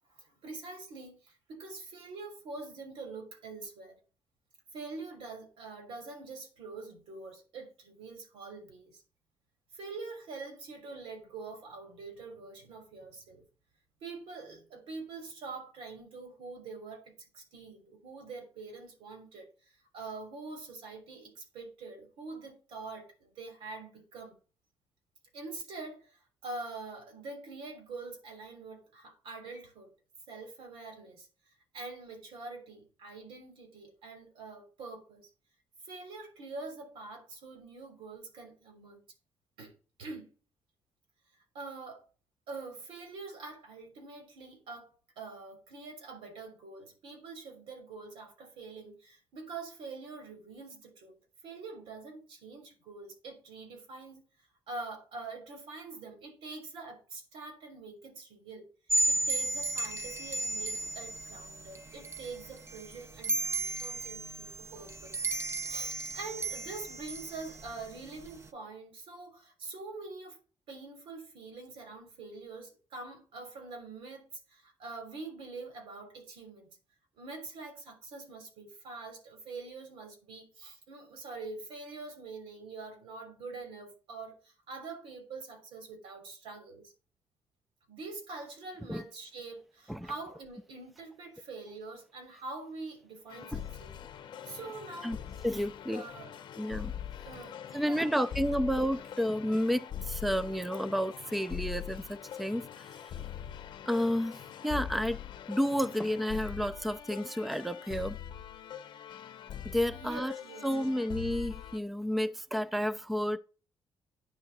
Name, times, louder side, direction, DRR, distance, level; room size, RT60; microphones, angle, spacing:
voice 1, 0.1-4.0 4.7-9.0 9.7-13.4 14.0-24.4 25.3-29.9 30.3-31.3 31.7-35.3 35.9-39.0 39.6-39.7 40.0-40.3 41.5-42.0 42.5-51.1 51.4-54.2 54.7-58.7 59.1-65.2 65.7-70.4 70.7-76.8 77.2-86.9 87.9-93.9 94.5-95.3 95.9-96.4 97.2-98.1 109.9-110.7, right 3 dB, 90° right, 3.2 m, -45 dB
sound 1, 58.9-68.5, right 2 dB, 30° right, 0.8 m, -34 dB
sound 2, 93.3-111.8, left 9 dB, 60° left, 0.7 m, -43 dB
voice 2, 95.4-96.0 96.6-97.1 97.7-102.9 103.9-105.2 105.5-108.2 109.6-110.3 110.6-113.4, equal, ahead, 0.4 m, -31 dB
9.7 x 3.7 x 7.1 m
cardioid pair, 135°, 9 cm